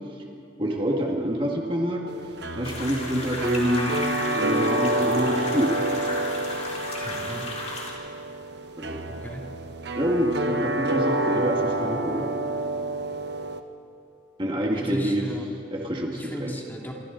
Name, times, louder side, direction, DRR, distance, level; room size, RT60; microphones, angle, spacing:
voice 1, 0.6-2.0 2.5-4.0 4.3-5.8 8.8-9.0 10.0-12.3 14.4-15.3 15.7-16.6, equal, 25° right, 0 dB, 1.8 m, -26 dB
sound 1, 2.1-13.6, right 1 dB, 60° right, 1.1 m, -28 dB
sound 2, 2.6-7.9, left 2 dB, 35° left, 4.0 m, -35 dB
voice 2, 7.0-7.5 9.1-9.4 14.7-15.5 16.1-16.9, equal, 10° left, -1 dB, 2.3 m, -35 dB
27.5 x 24.5 x 3.9 m, 2.5 s
head